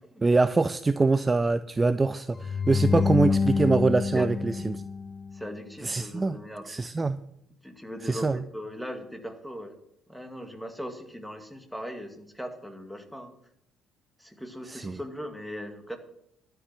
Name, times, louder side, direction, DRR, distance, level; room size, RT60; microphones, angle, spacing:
voice 1, 0.2-4.8 5.8-6.4 6.7-7.2 8.0-8.4 14.7-15.0, right 3 dB, 25° right, 14 dB, 0.5 m, -24 dB
sound 1, 2.4-5.6, left 5 dB, 25° left, 0.5 m, -27 dB
voice 2, 2.9-3.4 4.1-4.3 4.5-4.7 5.3-6.6 7.6-9.8 10.1-13.3 14.2-16.0, equal, ahead, 5 dB, 2.2 m, -39 dB
12.5 x 6.9 x 7.7 m, 0.76 s
hypercardioid pair, 50°, 0 cm